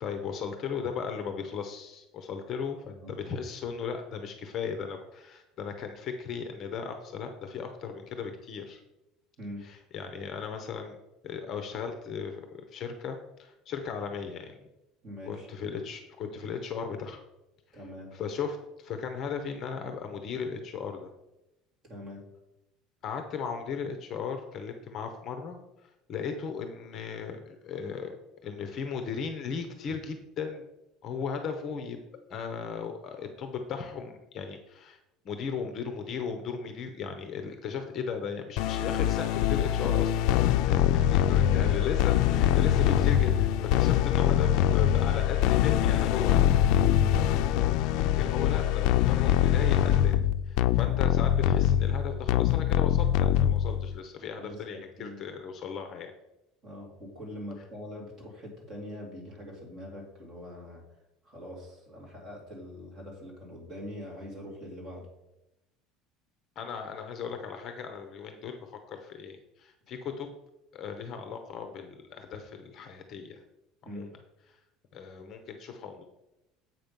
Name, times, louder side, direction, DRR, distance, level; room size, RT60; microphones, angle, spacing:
voice 1, 0.0-8.8 9.6-11.0 11.2-14.6 15.3-17.2 18.1-21.1 23.0-25.6 26.1-28.1 28.4-30.6 31.0-32.0 32.3-35.0 35.2-40.2 40.7-46.5 48.0-50.2 50.5-56.1 66.6-70.3 70.7-73.4 73.8-74.1 74.9-76.0, left 6 dB, 35° left, 6 dB, 0.8 m, -36 dB
voice 2, 2.8-3.1 9.4-9.7 15.0-15.5 17.7-18.1 21.8-22.3 41.0-41.8 47.0-47.2 54.3-55.2 56.6-60.8 61.2-65.1 73.8-74.1, equal, 30° right, -2 dB, 2.6 m, -43 dB
sound 1, 38.6-54.0, left 11 dB, 60° left, 0.4 m, -24 dB
7.8 x 6.0 x 5.3 m, 0.93 s
cardioid pair, 170°, 0 cm